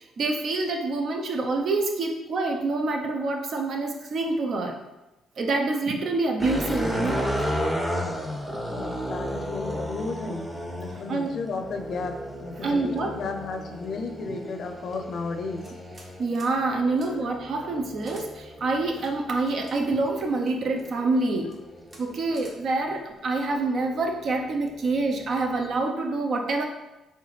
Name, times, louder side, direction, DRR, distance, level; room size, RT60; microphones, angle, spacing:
voice 1, 0.2-4.8 5.4-7.4 11.1-11.3 12.6-13.2 16.2-21.5 22.0-26.6, right 3 dB, 60° right, 2 dB, 0.7 m, -26 dB
sound 1, 6.4-22.7 23.4-25.8, equal, 5° right, 0.7 m, -34 dB
voice 2, 8.7-15.7, left 4 dB, 60° left, 5 dB, 0.5 m, -34 dB
sound 2, 15.6-16.1 16.3-16.5 17.0-17.1 18.0-18.3 19.0-19.7 20.5-20.9 21.4-21.6 21.9-22.0 22.3-22.6, right 1 dB, 35° right, 1.1 m, -50 dB
4.4 x 3.3 x 3.2 m, 1.0 s
cardioid pair, 90°, 0 cm